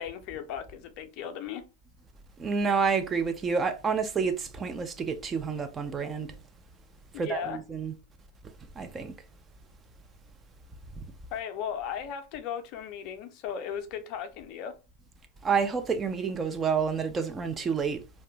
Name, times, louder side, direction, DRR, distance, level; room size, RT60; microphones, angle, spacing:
voice 1, 0.0-1.6 7.1-7.6 11.3-14.8, left 8 dB, 40° left, 0.4 m, -36 dB
voice 2, 2.4-6.4 7.2-7.9 8.8-9.2 15.4-18.0, right 5 dB, 20° right, 0.4 m, -29 dB
2.4 x 2.1 x 2.9 m
figure-of-eight pair, 90°, 0 cm